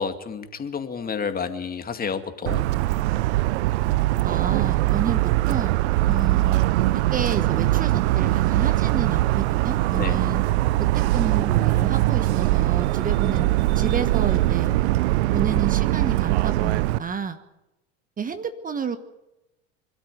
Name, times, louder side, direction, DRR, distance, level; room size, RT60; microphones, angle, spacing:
voice 1, 0.0-2.7 10.0-10.2, left 6 dB, 25° left, 7 dB, 2.2 m, -30 dB
Motor vehicle (road) / Siren, 2.5-17.0, right 17 dB, 65° right, 0.7 m, -21 dB
voice 2, 4.2-5.7 6.0-6.6 7.1-10.4 10.9-14.7 15.3-17.4 18.2-19.0, right 6 dB, 25° right, 10 dB, 1.3 m, -30 dB
25.5 x 13.0 x 9.3 m, 0.97 s
hypercardioid pair, 80°, 35 cm